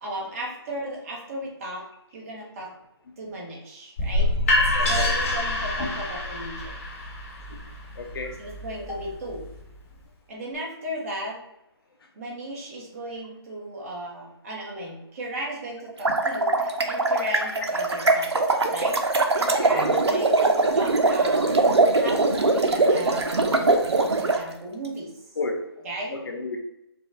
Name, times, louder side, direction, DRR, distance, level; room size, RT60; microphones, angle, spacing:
voice 1, 0.0-2.7 3.2-6.8 8.4-9.5 10.3-11.4 12.2-21.6 22.0-25.1 25.8-26.2, right 1 dB, 35° right, -2 dB, 1.2 m, -36 dB
sound 1, 4.0-9.8, left 2 dB, 30° left, 1.0 m, -26 dB
voice 2, 4.7-5.2 5.8-5.9 7.1-7.2 7.5-7.6 7.9-8.4 8.9-9.0 12.0-12.1 17.4-17.5 19.7-20.0 21.1-21.2 25.3-25.7 26.1-26.6, left 3 dB, 60° left, 3 dB, 0.9 m, -33 dB
sound 2, 15.9-24.4, right 3 dB, 85° right, 0.7 m, -22 dB
4.9 x 2.3 x 3.8 m, 0.83 s
figure-of-eight pair, 155°, 14 cm